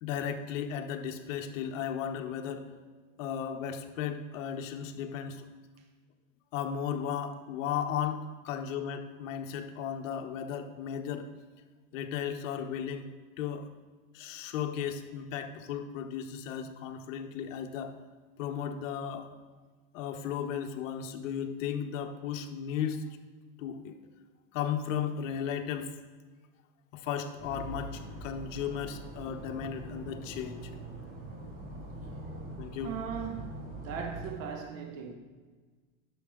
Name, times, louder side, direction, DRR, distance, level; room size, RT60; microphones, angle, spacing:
voice 1, 0.0-2.7 3.2-5.5 6.5-11.3 11.9-13.0 13.4-13.7 14.1-18.0 18.4-19.3 19.9-23.0 23.6-24.0 24.5-25.9 26.9-30.6 32.6-32.9, left 8 dB, 70° left, 6 dB, 1.0 m, -35 dB
sound 1, 27.4-34.3, right 2 dB, 30° right, 2.2 m, -43 dB
voice 2, 32.8-35.2, right 6 dB, 80° right, 4 dB, 1.3 m, -38 dB
10.5 x 6.2 x 3.6 m, 1.4 s
supercardioid pair, 145°, 40 cm